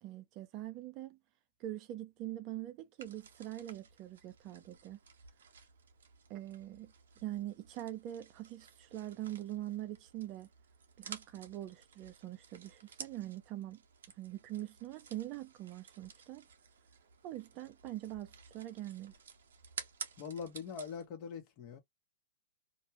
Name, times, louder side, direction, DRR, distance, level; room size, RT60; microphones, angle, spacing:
voice 1, 0.0-1.2 1.6-5.0 6.3-10.5 11.0-13.8 14.2-16.5 17.2-19.1, right 14 dB, 40° right, 0.5 m, -43 dB
sound 1, 3.0-21.0, right 6 dB, 70° right, 0.8 m, -53 dB
voice 2, 20.2-21.8, left 6 dB, 40° left, 1.1 m, -43 dB
2.5 x 2.3 x 3.0 m
hypercardioid pair, 115°, 0 cm